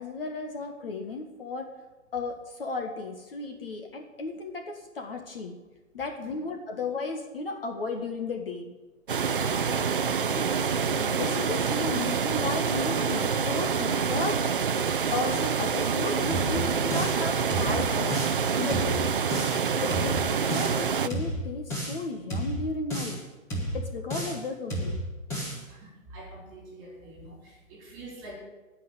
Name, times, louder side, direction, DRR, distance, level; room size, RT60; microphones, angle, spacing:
voice 1, 0.0-1.7 2.1-5.6 5.9-8.7 10.3-10.6 10.9-14.4 15.1-18.2 18.5-19.1 19.8-20.1 20.4-23.2 23.7-25.0, left 3 dB, 40° left, 4 dB, 1.6 m, -34 dB
sound 1, 9.1-21.1, right 6 dB, 40° right, 0.6 m, -27 dB
voice 2, 9.3-9.6 19.7-20.0 25.7-28.4, right 2 dB, 15° right, -2 dB, 4.3 m, -46 dB
sound 2, 16.3-17.2 17.5-18.4 18.7-19.6 19.9-20.8 21.1-22.0 22.3-23.2 23.5-24.4 24.7-25.6, right 1 dB, 5° left, 1.3 m, -32 dB
16.5 x 5.9 x 9.9 m, 1.1 s
hypercardioid pair, 175°, 41 cm